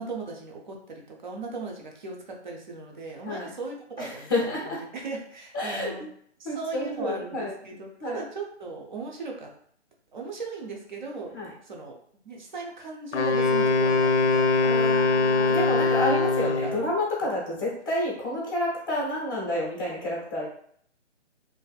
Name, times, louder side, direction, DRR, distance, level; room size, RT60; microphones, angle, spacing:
voice 1, 0.0-6.1 6.4-9.5 10.1-11.3 11.6-12.0 12.2-15.0 15.7-15.9 16.6-16.8, right 3 dB, 40° right, 0 dB, 0.5 m, -38 dB
voice 2, 4.0-4.8 5.5-5.9 6.4-7.5 8.0-8.2 11.3-11.5 14.6-20.5, left 1 dB, 20° left, -4 dB, 0.5 m, -29 dB
Wind instrument woodwind instrument, 13.1-16.8, left 3 dB, 70° left, 0.5 m, -22 dB
2.5 x 2.4 x 2.2 m, 0.62 s
hypercardioid pair, 160°, 36 cm